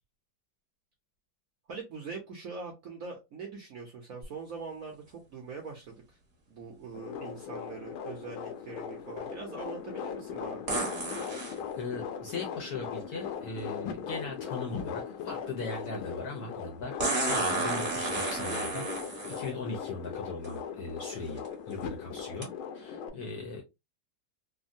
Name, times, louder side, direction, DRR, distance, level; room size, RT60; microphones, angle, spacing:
voice 1, 1.7-6.2 6.5-10.6 23.2-23.5, right 4 dB, 65° right, 0 dB, 0.9 m, -43 dB
sound 1, 4.2-4.3 10.7-11.6 13.6-13.7 17.0-19.5 20.4-20.5 21.2-21.5 22.4-22.5, right 2 dB, 35° right, 1.0 m, -31 dB
sound 2, 6.9-23.1, left 7 dB, 85° left, 1.4 m, -39 dB
voice 2, 11.2-22.5 22.7-23.6, left 3 dB, 65° left, 1 dB, 1.0 m, -39 dB
3.5 x 2.1 x 2.6 m, 0.23 s
omnidirectional pair, 2.2 m